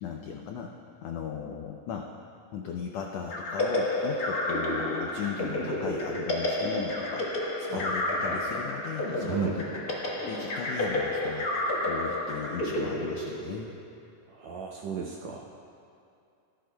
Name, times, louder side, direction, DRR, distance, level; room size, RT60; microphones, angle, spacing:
voice 1, 0.0-0.7 1.0-2.1 2.5-9.5 9.7-9.8 10.3-13.7, left 7 dB, 85° left, 2 dB, 1.4 m, -37 dB
sound 1, 3.3-13.9, left 1 dB, 45° left, 1.2 m, -30 dB
voice 2, 14.3-15.5, right 6 dB, 75° right, -1 dB, 1.7 m, -34 dB
18.0 x 12.0 x 2.3 m, 2.5 s
omnidirectional pair, 3.7 m